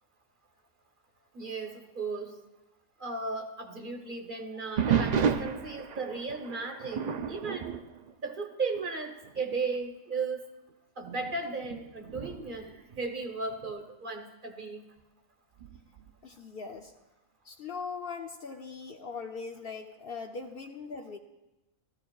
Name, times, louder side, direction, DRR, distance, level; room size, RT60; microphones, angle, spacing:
voice 1, 1.3-2.4 3.0-7.7 8.2-10.4 11.0-14.8, right 4 dB, 45° right, 4 dB, 1.0 m, -36 dB
sound 1, 4.8-8.9 9.2-9.6 10.2-10.3 11.0-13.7 15.6-16.1, right 7 dB, 75° right, 0.4 m, -33 dB
voice 2, 16.2-16.9 17.4-21.2, left 5 dB, 55° left, 4 dB, 0.7 m, -40 dB
15.0 x 14.0 x 2.3 m, 1.0 s
omnidirectional pair, 1.3 m